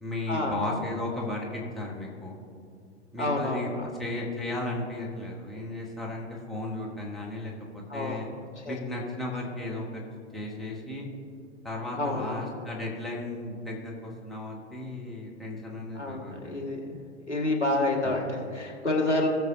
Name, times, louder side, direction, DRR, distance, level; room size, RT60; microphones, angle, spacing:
voice 1, 0.0-2.3 3.1-3.7 4.0-8.3 8.7-11.1 11.6-16.6 18.0-18.2, left 2 dB, ahead, -4 dB, 1.3 m, -35 dB
voice 2, 3.2-3.9 7.9-8.2 8.6-8.8 12.0-12.7 16.0-16.8 17.3-19.3, left 2 dB, 85° left, -1 dB, 1.7 m, -29 dB
18.0 x 6.8 x 2.7 m, 2.3 s
figure-of-eight pair, 105°, 34 cm